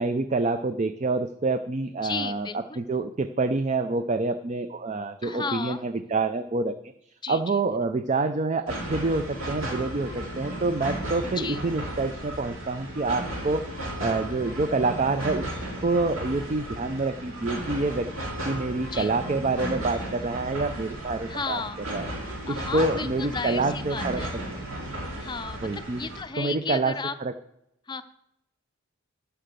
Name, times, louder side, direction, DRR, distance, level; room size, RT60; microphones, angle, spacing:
voice 1, 0.0-6.7 7.3-13.6 14.0-15.4 15.8-18.1 18.5-21.6 21.9-22.1 22.5-24.2 25.6-26.0 26.4-27.0 27.2-27.3, right 3 dB, 30° right, 9 dB, 0.4 m, -27 dB
voice 2, 2.0-2.8 5.2-5.8 7.2-7.6 11.4-11.6 18.8-19.1 21.3-21.8 22.5-24.3 25.1-27.1 27.9-28.0, left 5 dB, 20° left, 10 dB, 0.5 m, -34 dB
sound 1, 8.7-26.2, right 1 dB, 70° right, 2.6 m, -35 dB
11.5 x 5.7 x 6.7 m, 0.80 s
head